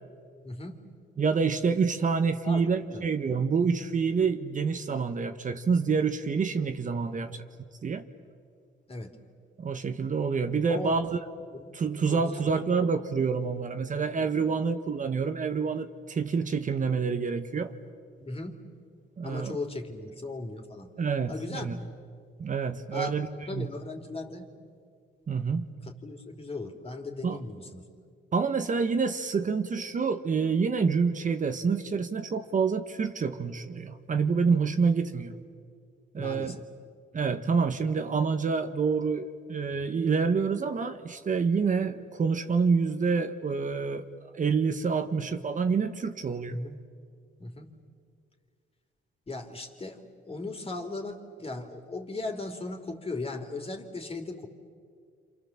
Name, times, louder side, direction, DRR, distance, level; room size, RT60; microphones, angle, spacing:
voice 1, 0.4-0.8 2.4-3.1 7.1-7.3 8.9-9.1 10.7-11.0 11.5-11.6 12.1-12.4 18.2-18.5 19.2-20.9 21.3-21.7 22.9-23.2 23.5-24.4 25.8-27.8 36.2-36.6 46.5-46.8 47.4-47.8 49.3-54.5, left 2 dB, 30° left, 4 dB, 3.3 m, -37 dB
voice 2, 1.2-7.4 7.8-8.0 9.6-11.2 11.7-17.7 19.2-19.6 21.0-21.8 22.4-23.3 23.5-23.7 25.3-25.6 27.2-27.4 28.3-35.3 36.1-36.6 37.1-44.0 44.3-46.6, right 5 dB, 40° right, 7 dB, 1.3 m, -27 dB
28.0 x 27.5 x 7.3 m, 2.2 s
cardioid pair, 90°, 20 cm